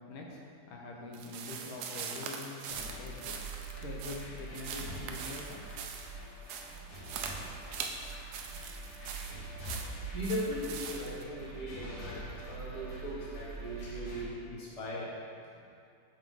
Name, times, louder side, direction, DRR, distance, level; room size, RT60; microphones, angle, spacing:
voice 1, 0.1-0.4 0.7-5.9, left 3 dB, 85° left, -1 dB, 1.7 m, -44 dB
sound 1, 1.1-11.2, right 6 dB, 80° right, 0.9 m, -42 dB
sound 2, 2.7-14.2, right 3 dB, 55° left, 1.8 m, -44 dB
voice 2, 6.8-9.4 10.1-15.1, equal, 25° left, -7 dB, 1.0 m, -40 dB
5.6 x 5.3 x 3.6 m, 2.4 s
omnidirectional pair, 2.2 m